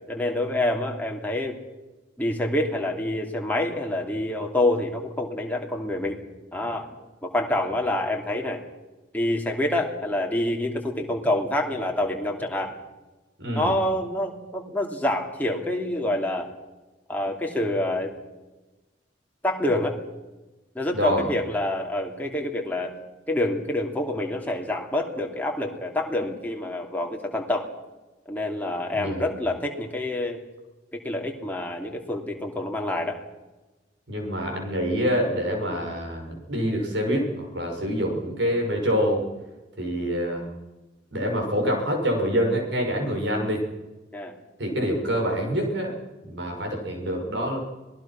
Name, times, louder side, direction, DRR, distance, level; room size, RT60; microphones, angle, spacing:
voice 1, 0.1-1.6 2.2-6.2 6.5-6.8 7.2-8.6 9.1-12.7 13.5-16.5 17.1-18.1 19.4-20.0 20.7-22.9 23.3-27.7 28.3-30.4 31.0-33.2 44.1-44.3, left 1 dB, 10° left, 1 dB, 2.8 m, -27 dB
voice 2, 13.4-13.7 20.9-21.3 28.9-29.3 34.1-39.2 39.8-40.5 41.1-43.6 44.6-45.9 46.2-47.6, equal, 65° right, 2 dB, 6.5 m, -26 dB
26.5 x 19.5 x 6.0 m, 1.1 s
head